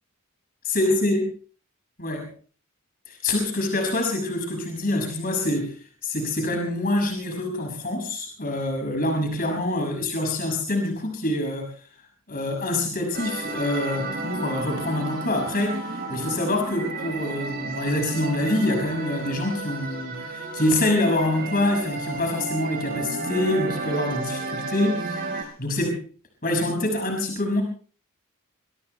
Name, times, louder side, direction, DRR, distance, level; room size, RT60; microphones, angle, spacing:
voice 1, 0.6-1.2 2.0-2.3 3.1-5.8 6.0-11.7 12.3-26.0 26.4-27.6, left 1 dB, 40° left, 3 dB, 6.1 m, -26 dB
sound 1, 13.1-25.4, right 2 dB, 45° right, 4.8 m, -32 dB
26.5 x 23.5 x 2.2 m, 0.39 s
head